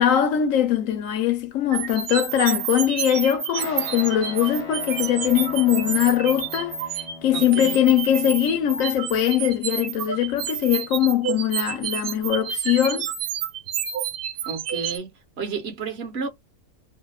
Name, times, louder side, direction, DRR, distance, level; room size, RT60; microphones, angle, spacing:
voice 1, 0.0-6.8 7.2-13.1, left 10 dB, 70° left, 1.1 m, -21 dB
sound 1, 1.7-15.0, right 8 dB, 80° right, 0.5 m, -30 dB
Guitar, 3.5-12.3, left 3 dB, 35° left, 0.7 m, -42 dB
voice 2, 7.3-7.8 14.4-15.1 15.4-16.3, right 5 dB, 50° right, 1.0 m, -31 dB
2.8 x 2.1 x 2.2 m
omnidirectional pair, 1.5 m